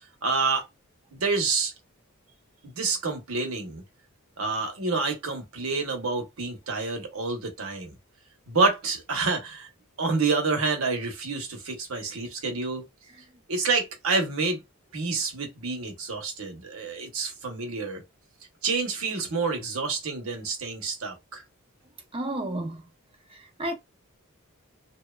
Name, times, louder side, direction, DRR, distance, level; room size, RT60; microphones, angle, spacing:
voice 1, 0.2-0.7 1.1-1.7 2.6-3.8 4.4-7.9 8.5-9.7 10.0-12.8 13.5-14.6 14.9-18.0 18.6-21.4, right 4 dB, 65° right, 0.8 m, -28 dB
voice 2, 22.1-22.8 23.3-23.7, right 1 dB, 25° right, 0.5 m, -31 dB
2.8 x 2.2 x 2.2 m
head